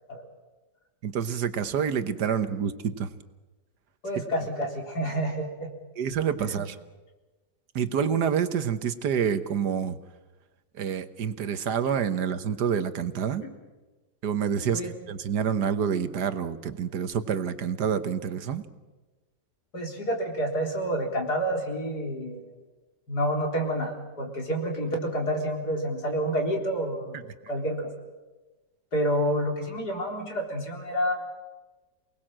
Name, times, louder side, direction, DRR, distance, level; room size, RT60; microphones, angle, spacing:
voice 1, 1.0-3.1 6.0-6.8 7.8-10.0 10.7-13.4 14.2-18.6 27.1-27.2, right 7 dB, 70° right, 11 dB, 1.7 m, -27 dB
voice 2, 4.0-5.7 6.5-6.6 13.4-13.5 14.7-14.9 19.7-22.5 23.1-27.2 27.5-27.9 28.9-31.1, equal, 65° left, 1 dB, 4.4 m, -29 dB
28.5 x 19.5 x 7.6 m, 1.2 s
omnidirectional pair, 1.8 m